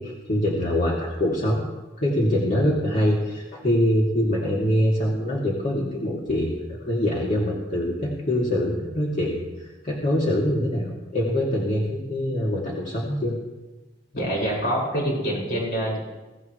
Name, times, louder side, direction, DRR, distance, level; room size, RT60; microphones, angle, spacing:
voice 1, 0.0-1.6 2.0-13.3, equal, 45° left, -5 dB, 2.7 m, -24 dB
voice 2, 14.1-16.0, equal, 65° left, -3 dB, 6.4 m, -25 dB
23.0 x 16.0 x 3.3 m, 1.1 s
head